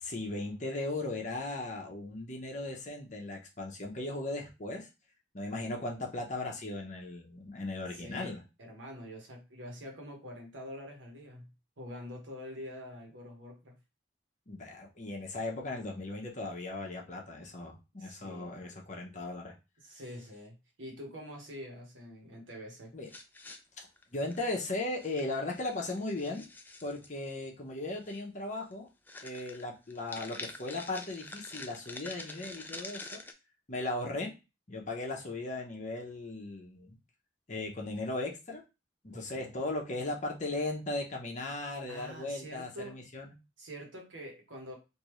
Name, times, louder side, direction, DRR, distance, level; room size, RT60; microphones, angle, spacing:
voice 1, 0.0-4.9 5.3-8.4 14.5-19.5 22.9-23.1 24.1-26.5 26.8-28.9 29.2-33.2 33.7-34.3 34.7-37.0 37.5-38.6 39.0-43.3, left 2 dB, 40° left, 0 dB, 0.9 m, -37 dB
voice 2, 7.9-8.3 8.6-11.5 11.8-13.7 18.0-18.5 19.8-22.9 39.1-39.6 41.9-43.0 43.6-44.8, equal, 85° right, 1 dB, 1.3 m, -46 dB
sound 1, 23.1-24.6 25.0-25.2 25.5-27.1 28.0-28.2 28.6-28.7 29.1-33.3, left 3 dB, 10° left, 0.3 m, -46 dB
3.5 x 2.7 x 3.1 m, 0.28 s
head